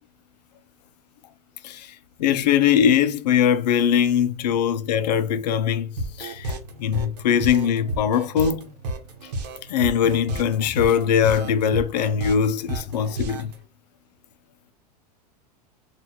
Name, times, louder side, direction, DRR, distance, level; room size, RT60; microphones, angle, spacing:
voice 1, 1.6-8.7 9.2-9.3 9.7-13.5, left 8 dB, 80° left, 0.5 m, -21 dB
sound 1, 6.0-13.5, right 1 dB, 80° right, 0.9 m, -31 dB
3.9 x 2.5 x 2.8 m
supercardioid pair, 140°, 21 cm